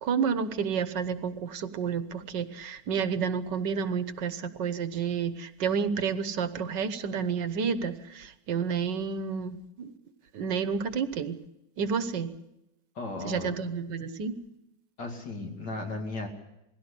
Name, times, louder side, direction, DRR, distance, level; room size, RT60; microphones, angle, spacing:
voice 1, 0.0-9.9 10.3-11.4 11.8-12.3 13.2-14.4, right 6 dB, 70° right, 12 dB, 1.6 m, -30 dB
voice 2, 12.9-13.6 15.0-16.3, left 2 dB, 65° left, 3 dB, 3.1 m, -35 dB
21.0 x 16.5 x 8.4 m, 0.89 s
omnidirectional pair, 2.1 m